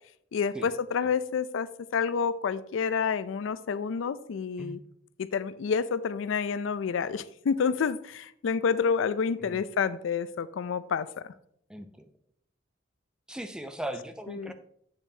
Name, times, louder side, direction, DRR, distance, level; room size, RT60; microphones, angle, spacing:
voice 1, 0.3-4.8 5.2-11.3 14.3-14.5, left 6 dB, 85° left, 15 dB, 0.4 m, -29 dB
voice 2, 11.7-12.1 13.3-14.5, right 1 dB, 5° right, 8 dB, 0.5 m, -38 dB
8.1 x 7.0 x 2.7 m, 0.68 s
head